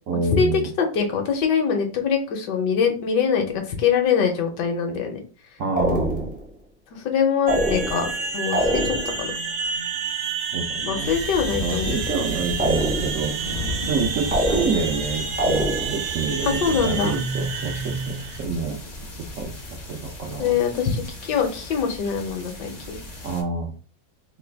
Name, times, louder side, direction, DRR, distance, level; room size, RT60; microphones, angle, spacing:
voice 1, 0.1-0.7 5.6-6.3 10.5-11.1 11.6-13.4 13.9-18.8 19.4-19.5 19.9-20.5 23.2-23.7, right 4 dB, 70° right, 0 dB, 0.7 m, -27 dB
voice 2, 0.8-5.2 6.9-8.1 8.3-9.3 10.8-12.0 16.4-17.2 20.4-23.0, left 6 dB, 70° left, 3 dB, 1.3 m, -23 dB
sound 1, 5.8-6.5 7.5-8.2 8.5-9.3 12.6-13.3 14.3-15.0 15.4-16.1, equal, 10° right, 0.4 m, -25 dB
sound 2, 7.5-18.4, right 5 dB, 90° right, 1.3 m, -30 dB
sound 3, 11.0-23.4, left 1 dB, 40° left, 0.6 m, -35 dB
3.3 x 2.3 x 3.3 m, 0.37 s
omnidirectional pair, 2.0 m